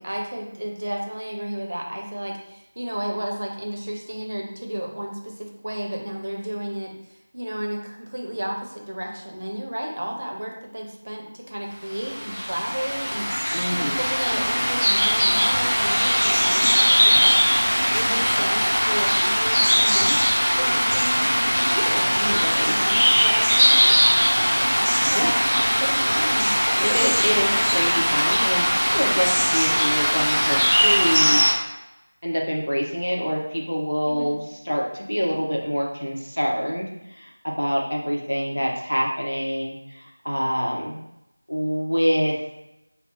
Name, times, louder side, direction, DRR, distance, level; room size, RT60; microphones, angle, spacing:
voice 1, 0.0-20.2 20.4-24.0 24.8-25.4 25.8-27.6 34.1-34.4, right 1 dB, 45° right, 0 dB, 0.6 m, -32 dB
sound 1, 12.0-31.5, equal, 20° left, 1.2 m, -20 dB
voice 2, 13.5-14.0 22.2-22.7 24.8-25.3 26.8-28.7 28.9-31.4 32.2-40.9 41.5-42.4, equal, 70° left, -1 dB, 0.9 m, -26 dB
5.4 x 2.0 x 2.8 m, 0.89 s
figure-of-eight pair, 175°, 0 cm